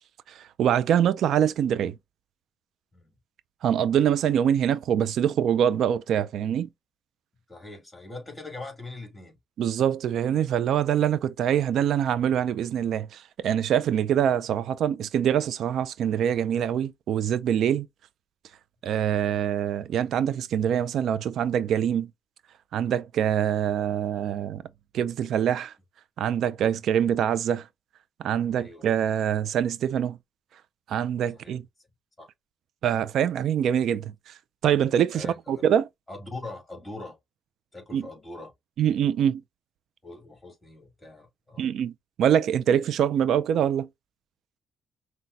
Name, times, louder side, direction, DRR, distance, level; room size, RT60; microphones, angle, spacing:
voice 1, 0.3-1.9 3.6-6.7 9.6-17.9 18.8-22.1 22.7-24.6 24.9-25.7 26.2-27.7 28.2-30.2 30.9-31.6 32.8-34.3 34.6-35.9 37.9-38.1 38.8-39.4 41.6-41.9 42.2-43.9, right 9 dB, 70° right, 0.3 m, -24 dB
voice 2, 7.5-9.4 18.8-18.9 28.6-28.8 31.3-31.6 32.2-32.3 35.1-35.6 36.1-37.2 37.7-38.5 40.0-41.7, left 2 dB, 15° left, 2.4 m, -41 dB
5.7 x 2.1 x 2.6 m
cardioid pair, 90°, 0 cm